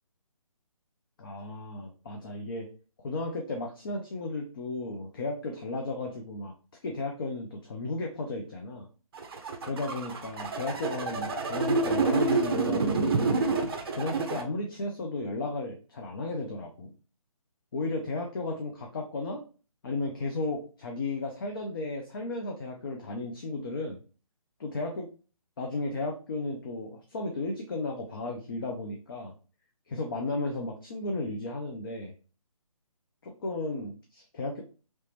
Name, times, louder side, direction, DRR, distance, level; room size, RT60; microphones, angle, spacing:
voice 1, 1.2-2.7 3.0-6.5 6.8-8.9 9.7-13.4 13.7-16.9 17.7-19.4 19.8-24.0 24.6-25.1 25.6-29.3 29.9-32.1 33.2-34.6, left 2 dB, 40° left, 2 dB, 0.5 m, -34 dB
sound 1, 9.2-14.4, right 4 dB, 40° right, 0.6 m, -28 dB
3.0 x 2.9 x 3.2 m, 0.36 s
figure-of-eight pair, 150°, 18 cm